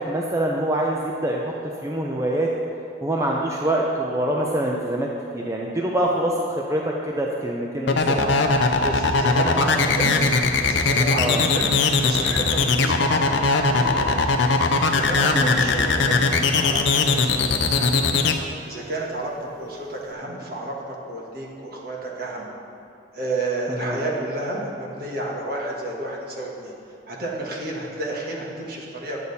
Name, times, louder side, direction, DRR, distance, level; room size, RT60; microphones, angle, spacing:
voice 1, 0.0-1.5 1.8-2.5 3.0-5.1 5.3-8.3 11.2-11.4 15.3-15.6 23.7-24.0, right 1 dB, 15° right, -2 dB, 0.5 m, -25 dB
sound 1, 7.9-18.3, left 4 dB, 75° left, 0.7 m, -19 dB
voice 2, 8.8-10.1 10.6-11.7 12.0-13.4 13.7-14.2 14.9-18.0 18.6-22.5 23.1-26.7 27.1-29.2, right 2 dB, 50° right, -3 dB, 1.6 m, -31 dB
9.8 x 8.6 x 4.1 m, 2.7 s
head